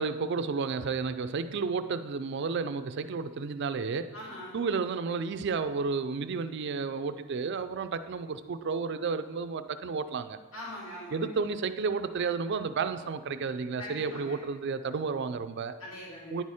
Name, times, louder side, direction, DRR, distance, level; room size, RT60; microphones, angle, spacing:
voice 1, 0.0-4.2 4.5-10.4 11.1-15.8 16.3-16.4, right 5 dB, 50° right, 0.3 m, -32 dB
voice 2, 4.1-4.6 10.5-11.3 13.8-14.4 15.8-16.4, left 1 dB, 65° left, 2.6 m, -42 dB
9.9 x 4.3 x 4.8 m
head